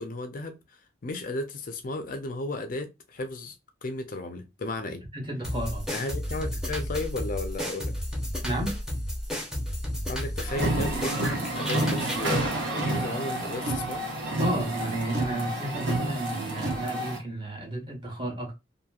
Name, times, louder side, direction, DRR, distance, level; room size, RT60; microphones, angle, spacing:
voice 1, 0.0-3.6 3.8-5.0 5.9-7.9 10.1-14.0, left 2 dB, 45° left, 0.4 m, -34 dB
voice 2, 5.1-5.9 8.4-8.7 14.4-18.5, right 1 dB, 25° right, 1.0 m, -32 dB
sound 1, 5.4-12.3, equal, 5° right, 0.6 m, -32 dB
sound 2, 10.5-17.2, right 1 dB, 75° right, 1.0 m, -29 dB
2.8 x 2.6 x 2.3 m
head